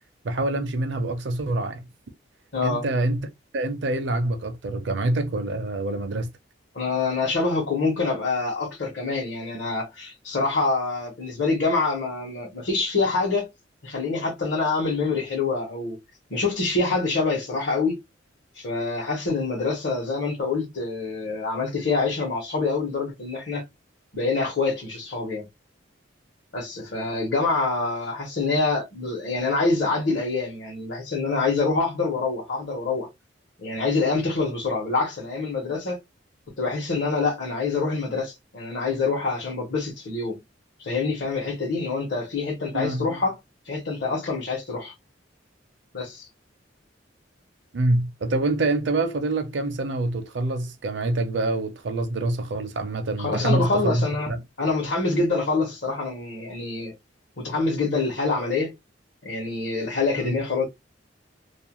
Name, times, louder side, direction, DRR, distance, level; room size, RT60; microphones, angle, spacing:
voice 1, 0.2-1.9 2.6-3.3 3.5-6.3 42.7-43.1 47.7-54.4 60.2-60.3, right 2 dB, 65° right, 0.5 m, -26 dB
voice 2, 2.5-2.8 6.7-13.5 13.8-16.0 16.3-18.0 18.5-23.6 24.1-25.5 26.5-33.1 33.6-36.0 36.6-40.4 40.8-43.3 43.6-44.9 45.9-46.3 53.2-54.3 54.6-56.9 57.4-58.7 59.2-60.7, left 3 dB, 60° left, 0.9 m, -26 dB
2.4 x 2.1 x 2.9 m
head